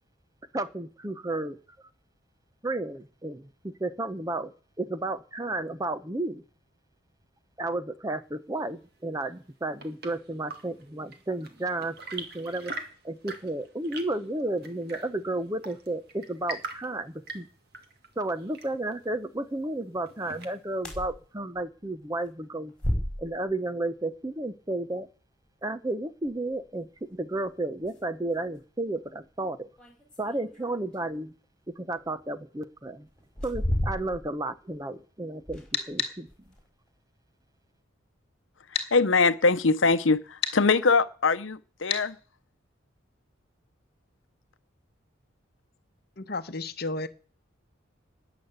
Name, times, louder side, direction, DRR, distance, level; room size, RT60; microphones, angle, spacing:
voice 1, 0.5-1.6 2.6-4.5 4.8-6.4 7.6-17.5 18.2-22.7 23.2-25.1 25.6-29.7 30.2-31.3 31.7-33.1 33.4-36.3, right 2 dB, 15° right, 11 dB, 0.8 m, -32 dB
Chirp tweet / Engine / Tap, 9.4-20.9, right 3 dB, 50° right, 2.2 m, -44 dB
sound 1, 20.8-21.2 21.6-21.7 22.8-23.5 26.2-26.3 27.4-27.5 27.8-28.0 28.6-28.7 29.8-31.2 32.2-32.3 33.2-34.4 34.7-34.8 35.4-35.9 36.3-36.7, equal, 5° left, 5.0 m, -32 dB
sound 2, 35.7-36.1 38.7-38.9 40.4-40.6 41.9-42.1, left 7 dB, 30° left, 2.4 m, -29 dB
voice 2, 38.9-42.2, left 4 dB, 70° left, 12 dB, 0.9 m, -22 dB
voice 3, 46.2-47.1, left 2 dB, 50° left, 11 dB, 1.0 m, -33 dB
20.0 x 6.9 x 8.1 m, 0.40 s
head